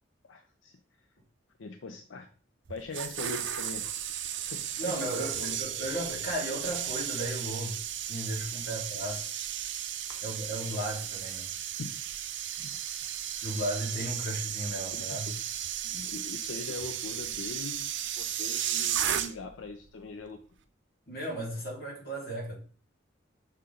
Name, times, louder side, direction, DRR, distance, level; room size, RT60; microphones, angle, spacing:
voice 1, 0.2-0.7 1.6-2.3 2.7-3.9 4.4-5.6 10.1-10.5 11.8-11.9 12.6-13.1 14.9-15.4 15.8-17.9 18.2-20.4, left 3 dB, 85° left, 0.6 m, -42 dB
sound 1, 2.7-19.6 19.9-20.2, right 10 dB, 65° right, 0.6 m, -35 dB
voice 2, 4.8-9.3 10.2-11.5 13.4-15.3 21.1-22.6, right 1 dB, 55° left, 2.5 m, -35 dB
6.2 x 4.3 x 3.9 m
head